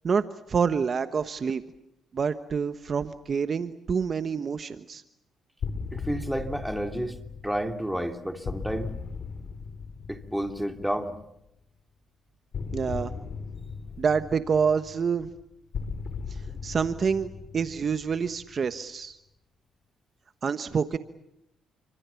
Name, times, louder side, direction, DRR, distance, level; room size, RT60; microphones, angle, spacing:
voice 1, 0.0-1.6 2.1-5.0 12.7-13.1 14.0-15.3 16.3-19.2 20.4-21.0, right 6 dB, 45° right, 10 dB, 1.2 m, -27 dB
sound 1, 5.6-11.4 12.5-18.8, left 5 dB, 60° left, 4.8 m, -38 dB
voice 2, 5.9-7.2 7.4-8.9 10.1-11.2, right 1 dB, 5° right, 6 dB, 2.9 m, -30 dB
29.5 x 25.5 x 7.1 m, 0.82 s
cardioid pair, 90°, 0 cm